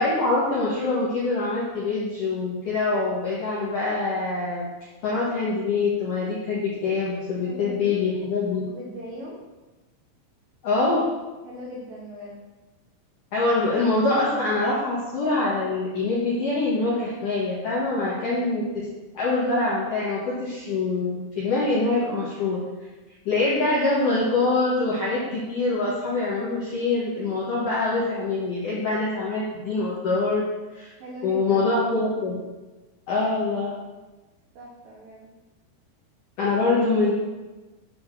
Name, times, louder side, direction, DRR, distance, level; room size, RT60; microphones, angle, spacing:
voice 1, 0.0-4.7 5.0-8.6 10.6-11.0 13.3-18.6 19.1-22.6 23.3-30.4 30.7-30.9 31.2-32.4 33.1-33.7 36.4-37.1, left 3 dB, 70° left, -7 dB, 2.0 m, -24 dB
voice 2, 7.4-8.2 8.7-9.4 11.4-12.4 18.1-18.5 31.0-31.8 34.5-35.3, equal, 80° right, -3 dB, 2.0 m, -39 dB
9.3 x 4.3 x 6.6 m, 1.2 s
omnidirectional pair, 5.9 m